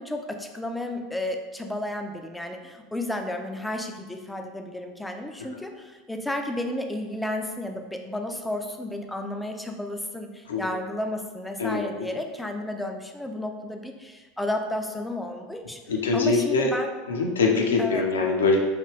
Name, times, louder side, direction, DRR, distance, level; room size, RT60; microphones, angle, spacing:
voice 1, 0.0-15.8 16.1-16.9 17.8-18.1, left 1 dB, 5° left, 4 dB, 0.3 m, -32 dB
voice 2, 15.9-16.7 17.1-18.6, left 3 dB, 70° left, 1 dB, 0.5 m, -23 dB
3.2 x 2.3 x 3.2 m, 1.3 s
figure-of-eight pair, 80°, 0 cm